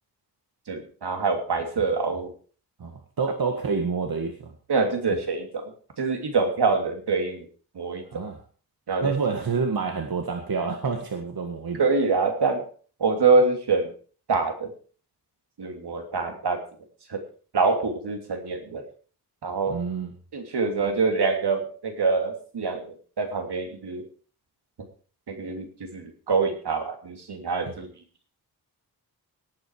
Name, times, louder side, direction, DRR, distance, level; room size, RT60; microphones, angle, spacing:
voice 1, 0.7-2.3 4.7-7.4 7.7-8.2 8.9-9.1 11.8-12.7 13.0-13.9 14.3-14.7 15.6-16.6 17.1-17.2 17.5-18.8 19.4-19.8 20.3-24.0 25.3-27.9, right 4 dB, 80° right, 4 dB, 3.0 m, -25 dB
voice 2, 2.8-4.5 8.1-8.4 9.0-11.8 19.7-20.1 27.7-27.8, right 5 dB, 60° right, 3 dB, 2.0 m, -28 dB
18.0 x 9.0 x 4.9 m, 0.41 s
wide cardioid pair, 145°, 39 cm